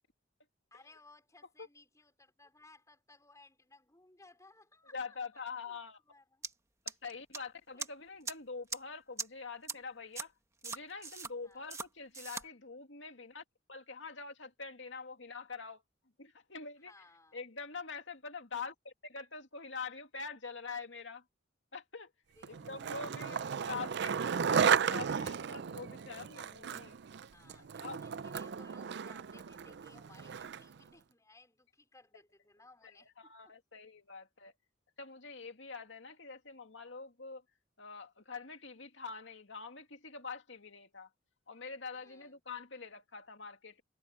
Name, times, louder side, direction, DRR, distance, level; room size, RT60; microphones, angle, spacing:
voice 1, 0.7-5.2 5.7-5.8 6.1-6.4 7.7-7.9 11.4-11.7 16.8-17.4 22.3-24.2 27.3-33.6 41.9-42.4, left 2 dB, 15° left, 4.9 m, -61 dB
voice 2, 4.9-6.0 6.9-10.3 10.6-13.4 13.7-15.8 16.2-16.9 17.3-21.2 21.7-22.1 22.4-24.2 24.4-27.0 27.8-28.0 33.2-34.5 35.0-37.4 37.8-41.1 41.5-43.8, left 4 dB, 65° left, 2.5 m, -45 dB
sound 1, 6.4-6.5 6.9-7.4 7.8-7.9 8.3-8.4 8.7-8.8 9.2-9.3 9.7-9.8 10.2-10.3 10.6-11.3 11.7-11.9 12.1-12.4, right 4 dB, 15° right, 1.5 m, -39 dB
Skateboard, 22.4-30.8, right 7 dB, 60° right, 0.4 m, -34 dB
head